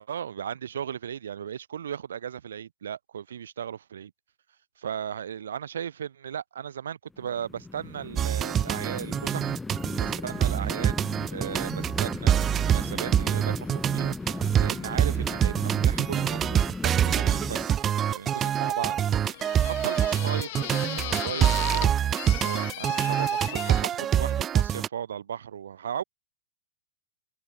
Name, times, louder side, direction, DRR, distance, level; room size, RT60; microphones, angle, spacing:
voice 1, 0.0-4.1 4.8-9.5 10.0-11.0 11.3-19.0 19.3-22.0 22.4-26.0, right 8 dB, 85° right, 3.4 m, -36 dB
sound 1, 7.1-17.7, left 3 dB, 5° left, 1.9 m, -37 dB
sound 2, 8.2-24.9, right 9 dB, 20° right, 0.8 m, -25 dB
sound 3, 17.6-23.8, left 19 dB, 50° left, 1.8 m, -38 dB
hypercardioid pair, 150°, 0 cm